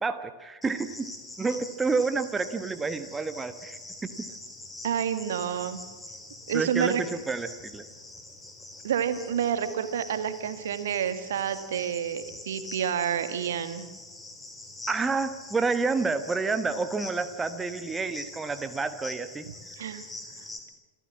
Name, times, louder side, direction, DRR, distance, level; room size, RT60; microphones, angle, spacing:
voice 1, 0.0-1.1 1.4-4.3 6.5-7.8 14.9-19.4, right 4 dB, 15° right, 10 dB, 1.2 m, -29 dB
Cricket, 0.6-20.6, left 2 dB, 10° left, 3.7 m, -44 dB
voice 2, 4.8-5.8 6.5-7.0 8.8-13.9 19.8-20.0, right 9 dB, 60° right, 11 dB, 1.7 m, -29 dB
27.0 x 14.0 x 7.4 m, 1.4 s
figure-of-eight pair, 90°, 0 cm